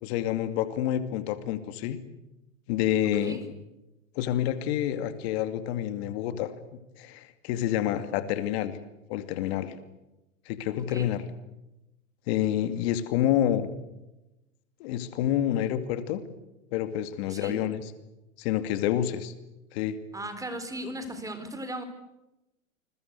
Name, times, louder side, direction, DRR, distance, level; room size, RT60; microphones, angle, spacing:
voice 1, 0.0-2.0 2.7-3.4 4.2-6.5 7.0-8.8 9.1-9.7 10.5-11.2 12.3-13.7 14.8-16.2 16.7-17.8 18.4-19.3 19.7-20.0, left 11 dB, 50° left, 10 dB, 2.5 m, -28 dB
voice 2, 3.1-3.4 10.8-11.1 17.3-17.6 20.1-21.8, right 1 dB, 10° right, 9 dB, 4.0 m, -37 dB
28.5 x 22.0 x 8.3 m, 0.97 s
hypercardioid pair, 120°, 39 cm